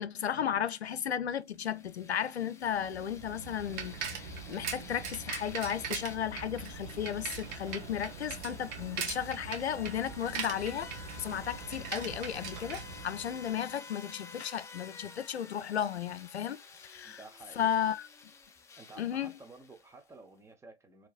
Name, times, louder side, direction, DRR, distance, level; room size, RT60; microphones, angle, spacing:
voice 1, 0.0-10.9 11.2-17.2 17.6-18.1 19.0-19.3, left 9 dB, 85° left, 0.5 m, -34 dB
sound 1, 1.4-20.1, left 4 dB, 10° left, 0.4 m, -51 dB
Bicycle, 2.8-13.6, right 6 dB, 45° right, 1.2 m, -41 dB
voice 2, 17.0-17.7 18.8-21.1, right 3 dB, 10° right, 0.8 m, -52 dB
4.6 x 3.0 x 2.4 m
figure-of-eight pair, 105°, 32 cm